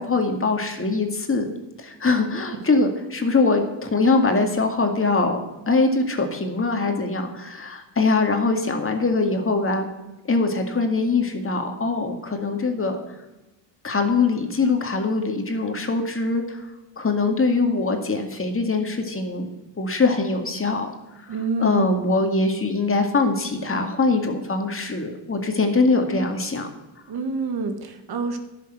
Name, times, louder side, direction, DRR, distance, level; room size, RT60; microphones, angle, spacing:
voice 1, 0.0-1.5 1.8-5.4 5.7-9.9 10.3-13.0 13.8-16.6 17.0-19.5 19.8-20.9 21.3-26.7, left 3 dB, 30° left, 4 dB, 2.1 m, -22 dB
voice 2, 21.3-22.0 27.1-28.4, right 3 dB, 55° right, 7 dB, 1.7 m, -26 dB
11.0 x 6.9 x 7.9 m, 1.0 s
supercardioid pair, 70°, 44 cm